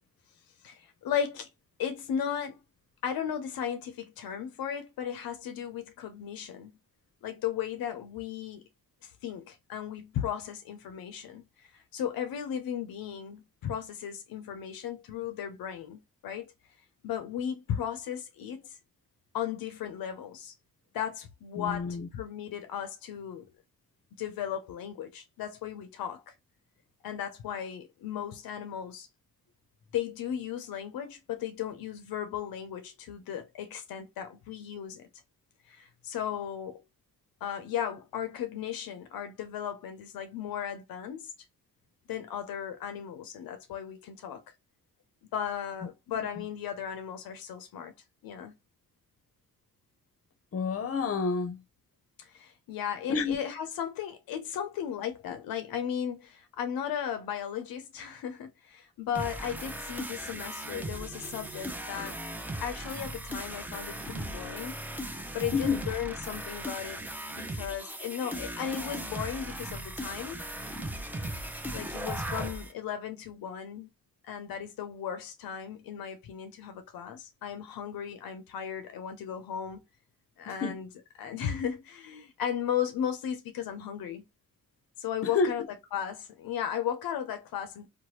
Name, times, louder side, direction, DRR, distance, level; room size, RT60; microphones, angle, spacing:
voice 1, 0.6-1.5 1.8-2.6 3.0-6.8 7.2-8.7 9.0-16.5 17.0-18.8 19.3-20.5 20.9-23.5 24.1-26.3 27.0-29.1 29.9-35.1 35.7-36.8 37.4-41.3 42.1-44.5 45.3-47.9 48.2-48.5 52.2-62.2 62.6-64.8 65.3-67.0 67.4-70.9 71.2-73.9 74.2-79.8 80.4-80.9 81.2-84.3 85.0-85.6 85.9-87.9, left 9 dB, 80° left, 0.6 m, -36 dB
voice 2, 21.6-22.1 46.1-46.4 50.5-51.6 53.1-53.4 65.5-65.8 80.5-80.8 85.2-85.7, left 4 dB, 40° left, 0.7 m, -30 dB
sound 1, 59.2-72.7, right 1 dB, 5° right, 0.6 m, -38 dB
3.1 x 2.2 x 2.8 m
cardioid pair, 65°, 35 cm